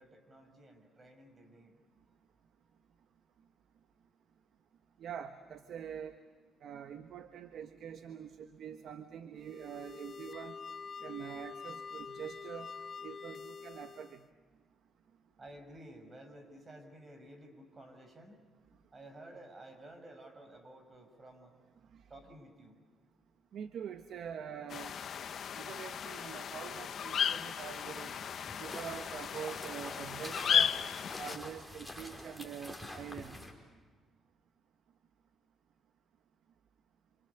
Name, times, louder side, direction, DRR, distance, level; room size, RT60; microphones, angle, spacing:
voice 1, 0.0-1.8 2.1-2.2 15.4-18.5 18.9-21.6 22.1-22.9, right 1 dB, 30° right, 6 dB, 6.2 m, -53 dB
voice 2, 5.0-6.1 6.6-10.6 11.0-12.7 13.0-14.2 21.9-22.0 23.5-25.0 25.5-28.1 28.6-30.7 31.2-33.4, right 8 dB, 70° right, 8 dB, 1.3 m, -45 dB
sound 1, 9.4-14.3, left 5 dB, 40° left, 0.9 m, -46 dB
sound 2, 24.7-31.4, left 8 dB, 60° left, 1.1 m, -35 dB
sound 3, 27.9-33.5, left 1 dB, ahead, 5.1 m, -47 dB
28.0 x 27.5 x 7.0 m, 1.4 s
cardioid pair, 90°, 0 cm